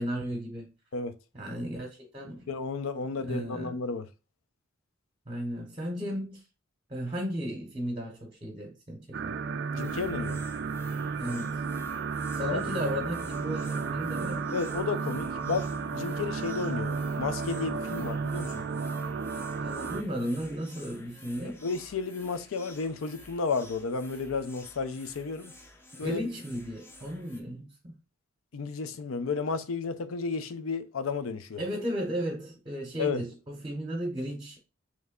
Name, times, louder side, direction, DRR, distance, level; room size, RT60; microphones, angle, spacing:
voice 1, 0.0-0.7 1.3-2.5 3.3-3.8 5.3-6.4 6.9-9.4 11.2-11.6 12.3-14.6 17.9-18.1 19.6-21.6 26.0-27.9 31.6-34.6, equal, 25° right, 0.8 m, -35 dB
voice 2, 2.5-4.1 9.7-10.4 12.5-12.6 14.5-18.6 21.4-25.5 26.0-26.2 28.5-31.6 33.0-33.2, left 4 dB, 85° left, 0.5 m, -32 dB
sound 1, 9.1-20.0, right 5 dB, 55° right, 0.3 m, -33 dB
sound 2, 9.7-27.4, left 1 dB, 10° left, 0.5 m, -51 dB
3.3 x 3.1 x 3.6 m
head